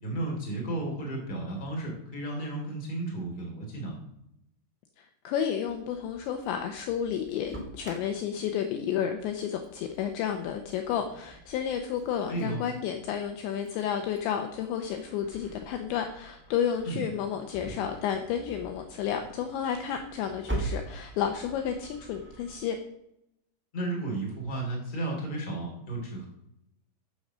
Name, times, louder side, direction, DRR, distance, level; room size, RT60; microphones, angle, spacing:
voice 1, 0.0-3.9 12.3-12.6 16.8-17.0 23.7-26.3, right 2 dB, 10° left, -1 dB, 2.7 m, -33 dB
voice 2, 5.0-22.8, left 8 dB, 75° left, 5 dB, 2.8 m, -31 dB
Engine starting, 5.7-22.6, right 2 dB, 10° right, 0.6 m, -44 dB
14.0 x 6.5 x 6.2 m, 0.80 s
omnidirectional pair, 5.8 m